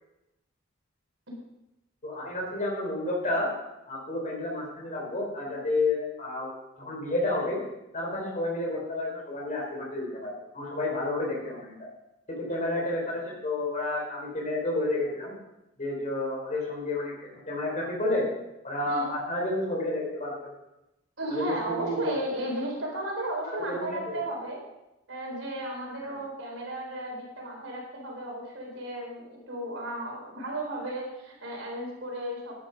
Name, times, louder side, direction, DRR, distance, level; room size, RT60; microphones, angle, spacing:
voice 1, 2.0-3.5 3.9-7.6 7.9-11.7 12.4-15.3 15.8-17.1 17.5-18.2 18.6-20.4 21.3-22.1 23.5-24.2 26.0-26.1, left 2 dB, 40° left, -2 dB, 4.0 m, -30 dB
voice 2, 21.2-24.6 25.1-32.5, right 1 dB, 70° right, -1 dB, 4.0 m, -34 dB
11.0 x 11.0 x 5.3 m, 0.94 s
head